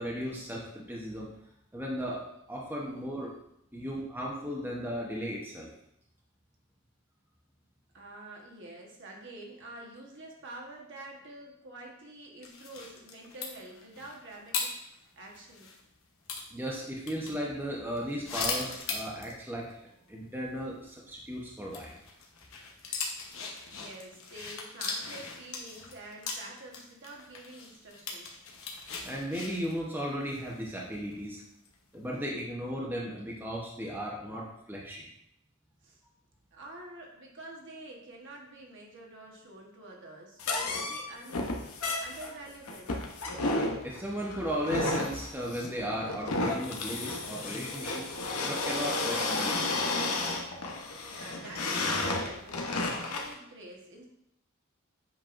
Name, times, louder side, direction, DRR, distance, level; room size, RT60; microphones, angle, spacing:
voice 1, 0.0-1.3 1.7-2.2 2.5-3.3 3.7-5.7 16.5-19.8 20.1-21.9 29.0-31.4 31.9-35.1 43.8-48.0 48.4-49.8, equal, 10° right, -3 dB, 0.9 m, -36 dB
voice 2, 7.9-15.7 23.7-28.4 35.8-36.0 36.5-43.0 51.0-54.1, right 2 dB, 55° right, 0 dB, 1.2 m, -47 dB
sound 1, 12.4-15.8 16.3-17.3 18.0-19.4 19.7-19.8 20.1-20.2 21.7-31.1 31.6-31.9, left 4 dB, 65° left, 1.1 m, -39 dB
sound 2, 40.4-53.3, left 2 dB, 85° left, 1.0 m, -32 dB
7.4 x 5.5 x 2.6 m, 0.78 s
head